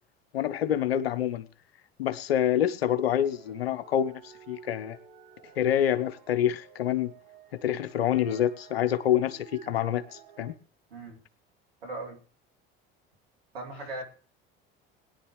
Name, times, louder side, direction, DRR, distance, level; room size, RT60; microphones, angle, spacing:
voice 1, 0.3-1.5 2.0-5.0 5.6-7.1 7.5-10.5, left 10 dB, 90° left, 13 dB, 0.8 m, -27 dB
sound 1, 3.2-10.5, right 7 dB, 65° right, 4.9 m, -53 dB
voice 2, 10.9-11.2 11.8-12.2 13.5-14.0, right 2 dB, 90° right, 1 dB, 2.7 m, -38 dB
21.0 x 10.5 x 3.2 m, 0.40 s
hypercardioid pair, 70°, 30 cm